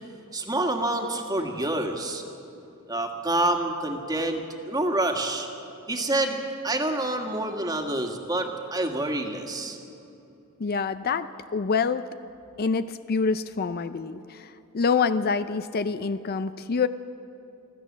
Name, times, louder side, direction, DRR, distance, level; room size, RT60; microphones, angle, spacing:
voice 1, 0.3-2.2 2.9-5.5 5.9-6.4 6.6-9.8, right 1 dB, 20° right, 3 dB, 1.8 m, -27 dB
voice 2, 10.6-12.1 12.6-16.9, left 5 dB, 45° left, 12 dB, 0.5 m, -26 dB
25.5 x 14.0 x 7.4 m, 2.8 s
head